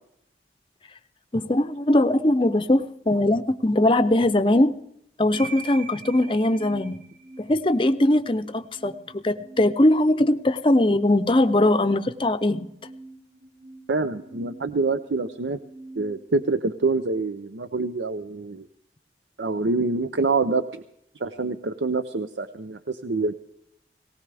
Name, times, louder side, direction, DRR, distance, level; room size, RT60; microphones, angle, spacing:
voice 1, 1.3-4.7 5.2-7.0 7.4-12.7, left 1 dB, 30° left, 10 dB, 0.6 m, -21 dB
sound 1, 5.3-17.4, right 3 dB, 60° right, 3.0 m, -44 dB
voice 2, 13.9-15.6 16.0-18.7 19.4-20.8 21.2-23.3, right 3 dB, 90° right, 10 dB, 0.6 m, -26 dB
19.0 x 18.0 x 3.4 m, 0.77 s
head